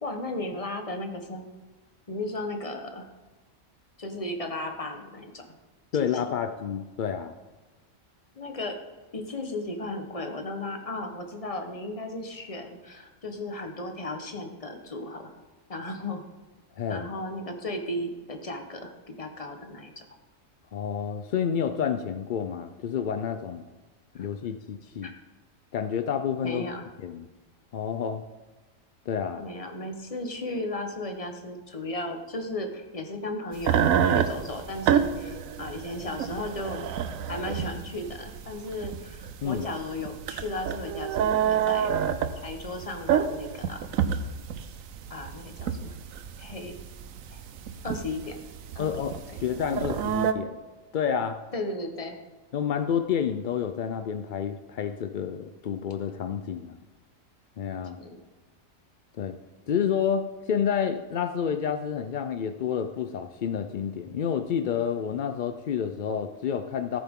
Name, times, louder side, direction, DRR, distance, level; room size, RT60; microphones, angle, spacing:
voice 1, 0.0-1.5 2.1-3.1 4.0-5.5 5.9-6.2 8.3-8.8 9.1-15.3 15.7-16.3 16.9-20.0 24.2-24.3 25.0-25.1 26.4-26.9 29.4-36.9 37.3-41.9 42.4-43.8 45.1-46.0 46.4-46.7 47.3-47.4 47.8-48.4 48.7-48.9 49.3-49.4 51.5-52.2 58.0-58.2, left 2 dB, 30° left, 4 dB, 1.2 m, -35 dB
voice 2, 5.9-7.3 16.8-17.1 20.7-23.6 24.1-25.1 25.7-26.7 27.0-27.3 27.7-28.2 29.1-29.4 39.4-39.7 48.8-50.6 50.9-51.4 52.5-56.8 57.6-58.0 59.2-59.3 59.7-67.0, left 8 dB, 65° left, 7 dB, 0.5 m, -29 dB
sound 1, 33.6-50.3, right 8 dB, 85° right, 1.1 m, -28 dB
14.5 x 8.7 x 3.7 m, 1.2 s
omnidirectional pair, 1.4 m